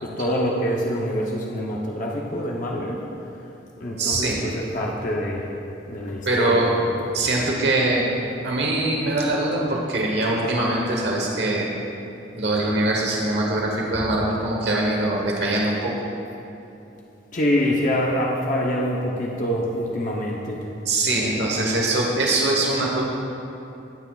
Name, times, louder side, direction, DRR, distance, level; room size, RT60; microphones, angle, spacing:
voice 1, 0.0-3.0 3.8-5.5 5.9-7.0 17.3-20.6, equal, 45° left, -3 dB, 0.8 m, -25 dB
voice 2, 4.0-4.4 6.2-6.7 7.1-8.1 8.4-11.7 12.4-15.9 20.8-23.0, right 2 dB, 65° right, -2 dB, 1.2 m, -22 dB
16.5 x 8.2 x 2.4 m, 2.8 s
head